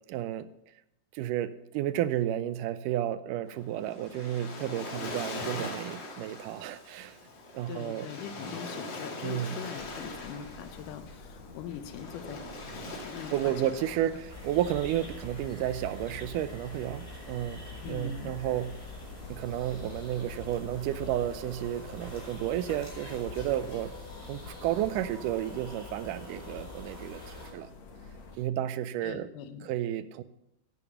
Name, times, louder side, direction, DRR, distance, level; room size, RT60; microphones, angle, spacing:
voice 1, 0.1-0.5 1.1-7.2 7.5-8.1 9.2-9.6 13.3-18.8 19.3-23.9 24.3-27.2 27.5-27.7 28.4-29.3 29.6-30.2, right 12 dB, 85° right, 14 dB, 2.2 m, -32 dB
Waves surf, 3.5-15.9, left 2 dB, 45° left, 1.9 m, -42 dB
voice 2, 7.7-12.5 12.7-13.5 17.8-18.4 29.0-29.7, left 9 dB, 85° left, 10 dB, 2.4 m, -42 dB
sound 1, 9.8-28.4, left 4 dB, 60° left, 2.5 m, -49 dB
sound 2, 14.3-27.5, left 2 dB, 15° left, 4.3 m, -45 dB
11.0 x 7.0 x 7.0 m, 0.85 s
omnidirectional pair, 3.6 m